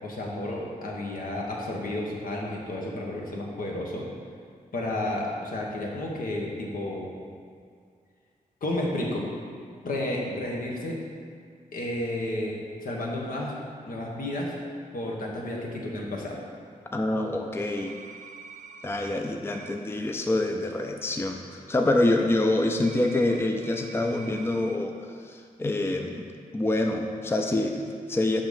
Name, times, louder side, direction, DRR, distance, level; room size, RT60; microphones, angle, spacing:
voice 1, 0.0-4.1 4.7-7.1 8.6-9.3 9.8-11.0 11.7-13.5 13.8-14.5 14.9-16.4, left 1 dB, 70° left, -2 dB, 1.3 m, -31 dB
voice 2, 16.9-18.0 18.8-26.3 26.5-28.4, left 2 dB, 15° left, 3 dB, 0.5 m, -26 dB
sound 1, 17.7-19.2 19.5-19.8 22.8-24.8, right 5 dB, 55° right, 0.5 m, -45 dB
6.0 x 5.5 x 5.2 m, 2.2 s
cardioid pair, 85°, 15 cm